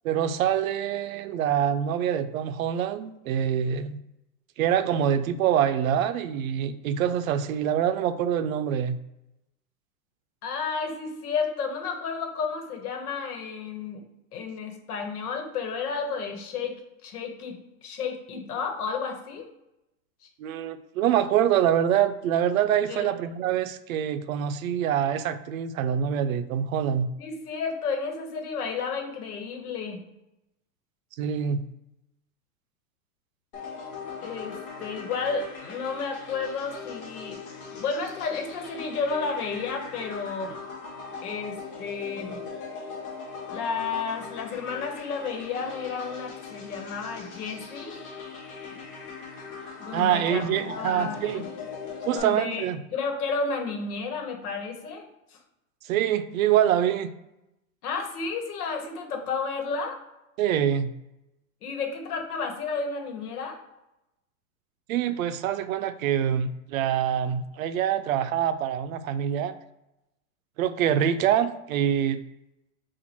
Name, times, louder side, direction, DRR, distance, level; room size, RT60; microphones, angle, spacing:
voice 1, 0.0-4.0 4.6-9.0 20.4-27.1 31.2-31.6 49.9-51.4 52.1-52.8 55.8-57.1 60.4-60.9 64.9-69.6 70.6-72.2, right 9 dB, 65° right, 12 dB, 0.5 m, -25 dB
voice 2, 10.4-14.0 14.3-19.5 22.9-23.1 27.2-30.0 34.2-40.6 41.2-42.4 43.5-48.0 48.7-48.8 49.8-51.4 52.1-52.6 52.9-55.4 57.8-60.0 61.6-63.6, left 5 dB, 85° left, 4 dB, 1.2 m, -32 dB
sound 1, 33.5-52.2, left 5 dB, 35° left, 1.0 m, -40 dB
4.3 x 2.5 x 4.2 m, 0.91 s
supercardioid pair, 170°, 44 cm